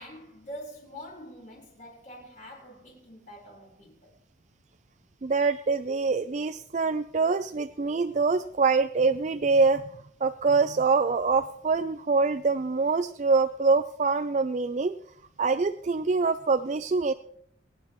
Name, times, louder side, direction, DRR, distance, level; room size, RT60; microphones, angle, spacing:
voice 1, 0.0-4.1, equal, 40° left, 4.5 m, -45 dB
voice 2, 5.2-9.8 10.2-14.9 15.4-17.1, right 4 dB, 40° right, 0.4 m, -25 dB
25.0 x 9.5 x 3.1 m
head